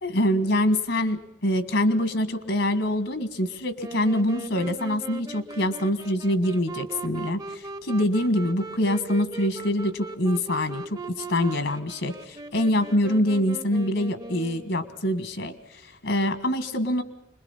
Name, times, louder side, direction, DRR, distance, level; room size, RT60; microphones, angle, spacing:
voice 1, 0.0-17.0, left 1 dB, 75° left, 11 dB, 1.7 m, -25 dB
Wind instrument woodwind instrument, 3.8-14.9, right 3 dB, 20° right, 0.7 m, -39 dB
26.0 x 21.0 x 5.7 m, 0.88 s
head